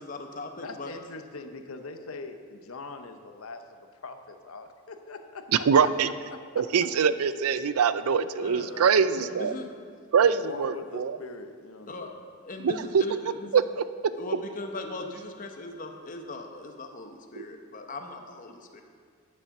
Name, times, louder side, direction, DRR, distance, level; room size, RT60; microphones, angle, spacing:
voice 1, 0.0-0.9 8.3-8.7 9.3-9.7 11.9-12.1 12.4-13.6 14.1-18.8, left 2 dB, 40° left, 4 dB, 0.9 m, -39 dB
voice 2, 0.6-5.9 6.3-6.6 8.6-9.5 10.3-12.2, left 3 dB, 75° left, 7 dB, 0.8 m, -42 dB
voice 3, 5.7-6.1 6.6-9.5 10.1-11.2 12.6-13.0 13.5-13.8 17.4-17.5, right 6 dB, 90° right, 13 dB, 0.4 m, -23 dB
9.6 x 7.1 x 5.9 m, 2.1 s
head